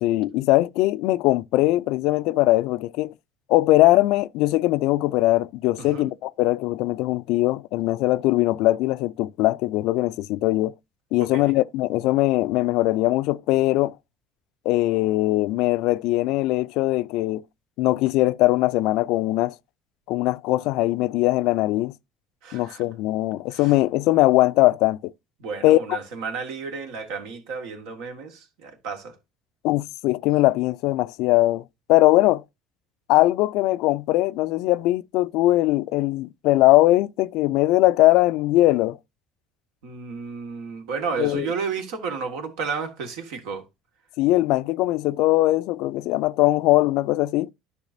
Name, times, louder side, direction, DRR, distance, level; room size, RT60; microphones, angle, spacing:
voice 1, 0.0-3.1 3.5-10.7 11.1-13.9 14.7-17.4 17.8-19.5 20.1-21.9 22.5-25.1 25.6-26.0 29.6-31.6 31.9-32.4 33.1-39.0 41.2-41.5 44.2-47.5, left 17 dB, 70° left, 0.3 m, -21 dB
voice 2, 11.2-11.5 22.4-22.8 23.5-23.7 25.4-29.1 39.8-43.6, right 5 dB, 80° right, 1.6 m, -32 dB
10.5 x 5.7 x 2.6 m
supercardioid pair, 95°, 0 cm